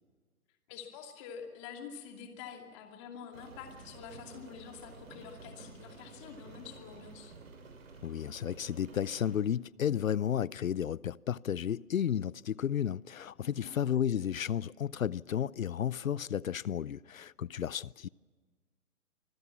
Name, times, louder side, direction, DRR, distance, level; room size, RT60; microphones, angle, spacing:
voice 1, 0.7-7.3 13.6-13.8, left 7 dB, 20° left, 2.6 m, -47 dB
Rain, 3.3-9.4, right 3 dB, 60° right, 6.6 m, -51 dB
voice 2, 8.0-18.1, left 9 dB, 65° left, 0.6 m, -33 dB
26.0 x 20.5 x 7.3 m
hypercardioid pair, 160°, 45 cm